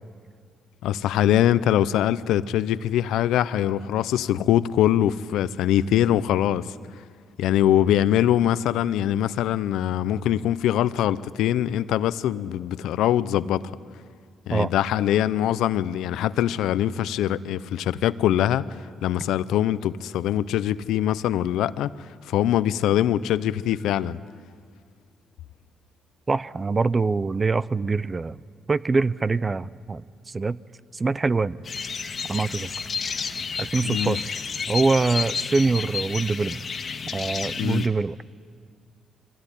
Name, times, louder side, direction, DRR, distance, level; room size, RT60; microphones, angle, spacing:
voice 1, 0.8-6.7 7.4-13.7 14.5-24.2 33.8-34.2 37.6-37.8, left 11 dB, 85° left, 16 dB, 0.6 m, -23 dB
voice 2, 26.3-28.4 28.7-30.6 30.9-31.6 32.3-32.7 33.6-34.4 34.7-36.6 37.1-38.1, right 3 dB, 30° right, 19 dB, 0.5 m, -24 dB
sound 1, 31.6-37.9, left 5 dB, 45° left, 1.6 m, -31 dB
24.0 x 17.0 x 10.0 m, 2.1 s
cardioid pair, 90°, 0 cm